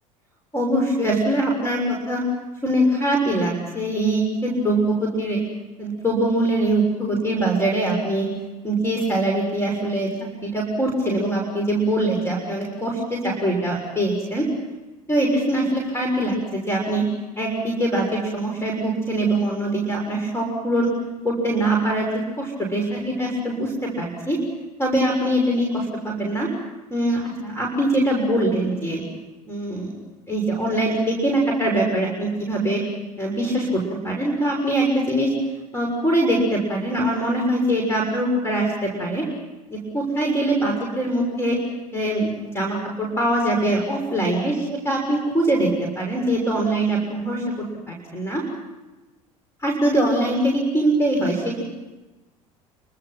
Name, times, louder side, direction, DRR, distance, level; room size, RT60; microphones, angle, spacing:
voice 1, 0.5-2.2 2.6-5.4 5.8-8.3 8.6-10.1 10.4-14.5 15.1-17.0 17.3-20.9 21.2-22.1 22.4-24.4 24.8-26.5 26.9-29.0 29.5-30.0 30.3-32.8 33.2-35.3 35.7-39.2 39.7-41.6 41.9-45.7 45.9-47.4 47.9-48.4 49.6-51.6, right 1 dB, 15° left, 0 dB, 6.6 m, -23 dB
28.5 x 26.0 x 6.0 m, 1.1 s
figure-of-eight pair, 65°, 18 cm